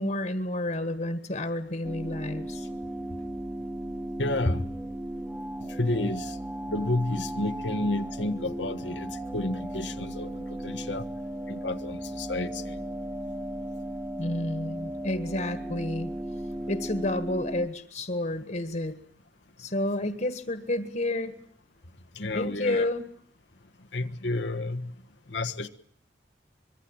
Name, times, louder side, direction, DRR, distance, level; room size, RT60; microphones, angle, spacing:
voice 1, 0.0-2.7 14.2-16.1 16.7-19.0 19.6-21.4 22.3-23.0, left 1 dB, 45° left, 1.7 m, -30 dB
sound 1, 1.8-17.7, right 1 dB, 10° right, 1.2 m, -36 dB
voice 2, 4.2-4.7 5.6-6.4 6.7-11.1 11.5-12.8 22.1-22.9 23.9-24.9 25.3-25.7, left 2 dB, 90° left, 1.5 m, -31 dB
25.0 x 22.5 x 8.9 m
head